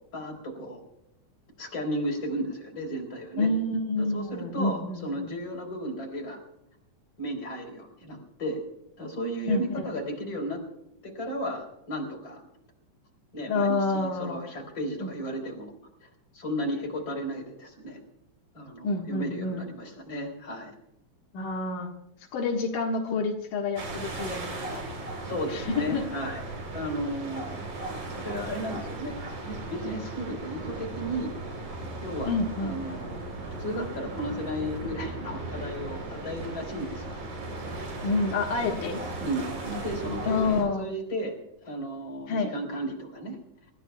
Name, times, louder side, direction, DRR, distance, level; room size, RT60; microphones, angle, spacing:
voice 1, 0.1-0.8 1.6-3.5 4.0-6.4 7.2-8.6 9.0-10.6 11.0-12.4 13.3-15.7 16.0-16.1 16.3-18.0 18.5-20.7 25.2-27.5 28.1-29.2 29.4-31.3 32.0-32.3 32.6-33.3 33.6-37.2 39.2-41.4 41.6-43.4, equal, 40° left, 0 dB, 4.8 m, -34 dB
voice 2, 3.4-5.3 9.5-9.9 13.5-14.4 15.0-15.1 18.8-19.6 21.3-21.9 22.3-24.8 25.5-26.0 32.2-32.8 38.0-39.0 40.3-40.9 42.3-42.5, left 3 dB, 85° left, 0 dB, 3.2 m, -28 dB
Beach North Berwick, 23.8-40.6, right 2 dB, 75° right, 5.1 m, -37 dB
29.5 x 15.0 x 2.3 m, 0.83 s
omnidirectional pair, 3.6 m